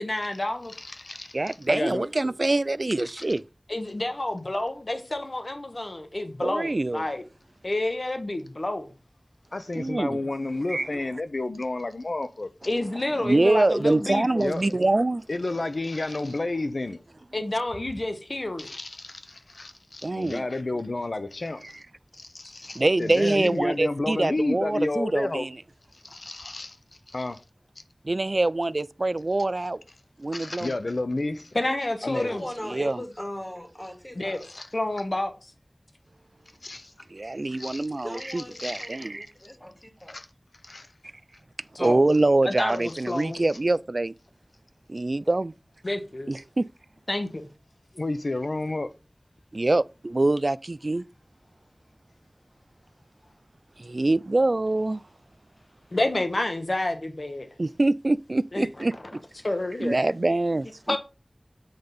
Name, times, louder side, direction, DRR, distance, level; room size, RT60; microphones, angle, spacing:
voice 1, 0.0-0.7 3.7-7.2 7.6-8.9 12.7-14.4 17.3-18.7 22.4-22.5 31.5-32.4 34.1-34.4 34.7-35.3 41.7-42.1 42.4-43.4 45.8-46.3 47.1-47.5 55.9-57.5 58.5-58.7 59.4-60.0 60.9-61.0, left 1 dB, 55° left, 1.2 m, -29 dB
voice 2, 0.8-2.1 9.5-12.5 14.4-14.7 15.3-17.0 18.6-21.8 22.1-25.4 26.0-26.8 27.1-27.4 30.3-31.5 32.0-32.3 34.4-34.7 36.6-36.9 37.6-37.9 38.6-39.0 40.1-40.3 40.6-40.9 47.9-48.9, left 2 dB, 80° left, 0.7 m, -31 dB
voice 3, 1.3-3.4 6.4-7.0 9.7-10.2 10.7-10.9 13.2-15.2 20.0-20.5 21.6-21.7 22.7-25.6 28.0-29.8 30.2-30.7 32.6-33.0 37.1-39.3 41.8-44.1 44.9-45.5 46.3-46.7 49.5-51.0 53.8-55.0 57.6-59.2 59.8-61.0, right 2 dB, 60° right, 0.3 m, -24 dB
voice 4, 32.0-34.4 37.9-40.2, equal, 25° left, 2.3 m, -38 dB
7.8 x 3.9 x 5.3 m
wide cardioid pair, 50°, 0 cm